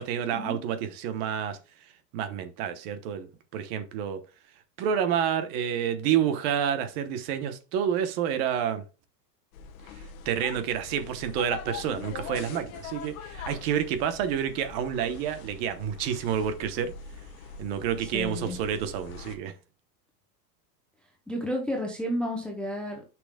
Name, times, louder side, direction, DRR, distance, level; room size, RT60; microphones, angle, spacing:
voice 1, 0.0-1.6 2.1-3.3 3.5-4.2 4.8-8.8 10.2-16.9 17.6-19.5, right 9 dB, 40° right, 1.0 m, -29 dB
sound 1, 9.5-19.4, left 5 dB, 55° left, 1.3 m, -42 dB
voice 2, 18.0-18.6 21.3-23.0, equal, ahead, 0.6 m, -32 dB
9.9 x 6.0 x 2.3 m
supercardioid pair, 155°, 50 cm